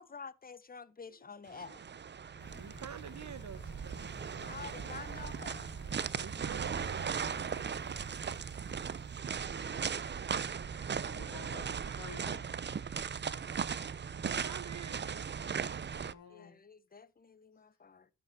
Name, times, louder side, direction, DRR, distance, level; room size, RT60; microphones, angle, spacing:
voice 1, 0.0-1.8 4.4-5.8 11.5-11.7 16.3-18.1, left 5 dB, 25° left, 0.8 m, -49 dB
voice 2, 1.0-1.8 2.3-2.5 3.1-3.3 3.7-3.9 10.7-12.4 15.9-16.6 17.5-17.6, left 6 dB, 85° left, 2.4 m, -55 dB
sound 1, 1.5-16.1, right 7 dB, 35° right, 0.5 m, -38 dB
voice 3, 2.3-4.7 6.2-8.1 14.2-16.0, right 8 dB, 60° right, 1.0 m, -50 dB
sound 2, 2.4-9.2, right 2 dB, 60° left, 4.2 m, -52 dB
12.5 x 6.0 x 4.5 m
cardioid pair, 90°, 33 cm